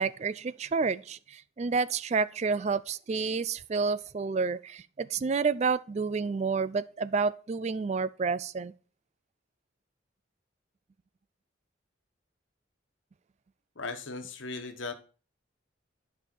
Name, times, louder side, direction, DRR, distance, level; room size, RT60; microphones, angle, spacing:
voice 1, 0.0-8.7, right 4 dB, 35° right, 0.3 m, -29 dB
voice 2, 13.7-14.9, left 3 dB, 80° left, 1.3 m, -37 dB
11.5 x 5.5 x 4.5 m
head